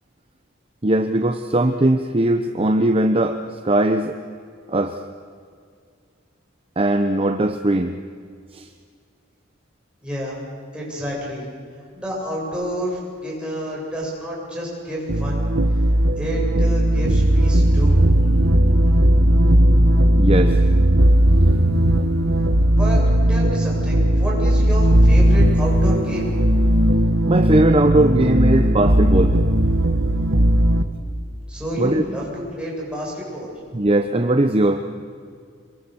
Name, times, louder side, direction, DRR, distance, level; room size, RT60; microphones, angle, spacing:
voice 1, 0.8-4.2 4.7-5.0 6.8-8.0 8.5-8.7 20.2-20.6 21.2-21.4 21.6-21.7 27.3-29.4 31.8-32.0 33.7-34.9, right 1 dB, 30° right, 7 dB, 0.8 m, -19 dB
voice 2, 10.0-10.4 10.7-11.4 11.9-15.4 16.2-18.0 22.7-23.0 23.3-26.3 31.5-33.5, equal, 5° right, -5 dB, 7.7 m, -29 dB
sound 1, 15.1-30.8, right 1 dB, 80° right, 1.5 m, -17 dB
27.0 x 23.0 x 7.0 m, 2.2 s
head